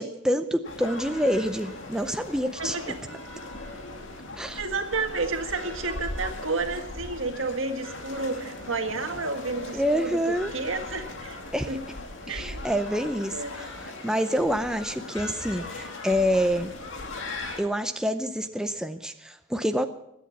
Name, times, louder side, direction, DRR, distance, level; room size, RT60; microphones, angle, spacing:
voice 1, 0.0-2.8 4.3-4.6 9.7-10.5 11.5-11.7 12.3-16.7 17.6-19.9, equal, 5° right, 7 dB, 0.5 m, -27 dB
sound 1, 0.6-17.6, left 2 dB, 65° left, 2.4 m, -39 dB
voice 2, 2.6-2.9 4.5-11.4 11.7-11.8 12.3-12.6 13.3-13.7, right 3 dB, 65° right, 5 dB, 1.9 m, -31 dB
20.5 x 8.6 x 7.1 m, 0.83 s
head